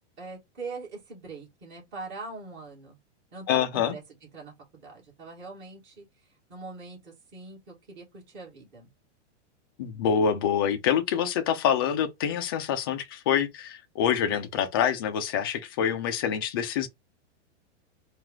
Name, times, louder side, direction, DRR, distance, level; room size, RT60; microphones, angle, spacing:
voice 1, 0.2-3.0 3.3-4.0 4.3-6.1 6.5-8.9, right 3 dB, 30° right, 2.6 m, -42 dB
voice 2, 3.5-4.0 9.8-16.9, left 8 dB, 20° left, 0.3 m, -26 dB
4.5 x 2.4 x 3.7 m
supercardioid pair, 160°, 36 cm